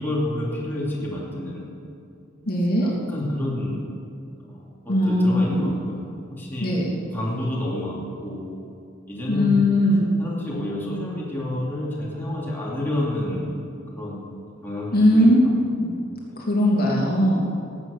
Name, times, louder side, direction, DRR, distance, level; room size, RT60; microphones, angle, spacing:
voice 1, 0.0-1.6 2.8-3.8 4.4-6.0 6.3-6.7 7.1-8.5 9.1-9.6 10.2-13.6 13.9-15.5, left 1 dB, 10° left, -6 dB, 2.8 m, -29 dB
voice 2, 2.5-2.9 4.9-5.7 6.6-6.9 9.3-10.1 14.9-15.4 15.8-15.9 16.5-17.4, left 1 dB, 50° left, -3 dB, 2.8 m, -19 dB
18.5 x 8.2 x 6.7 m, 2.5 s
head